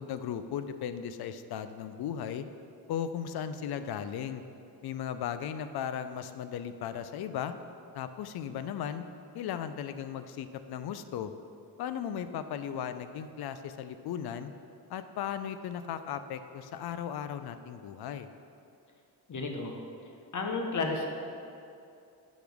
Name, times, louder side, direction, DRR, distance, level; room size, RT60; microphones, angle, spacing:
voice 1, 0.0-2.4 2.9-4.4 4.8-7.5 7.9-9.1 9.3-11.3 11.8-14.5 14.9-18.3, left 8 dB, 65° left, 11 dB, 0.5 m, -36 dB
voice 2, 19.3-19.8 20.3-21.1, left 3 dB, 45° left, 2 dB, 1.1 m, -32 dB
8.3 x 5.8 x 3.5 m, 2.6 s
cardioid pair, 70°, 41 cm